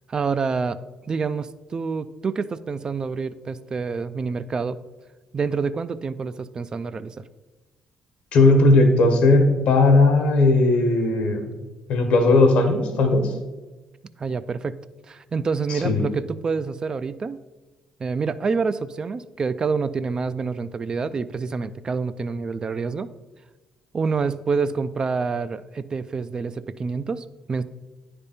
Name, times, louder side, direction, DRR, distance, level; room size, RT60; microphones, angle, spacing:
voice 1, 0.1-0.8 1.1-4.8 5.3-7.2 14.2-14.8 15.1-17.4 18.0-23.1 23.9-27.6, right 5 dB, 40° right, 13 dB, 0.3 m, -27 dB
voice 2, 8.3-11.5 11.9-13.3 15.7-16.0, left 2 dB, 70° left, 6 dB, 1.1 m, -17 dB
9.6 x 3.5 x 4.2 m, 1.2 s
supercardioid pair, 65°, 2 cm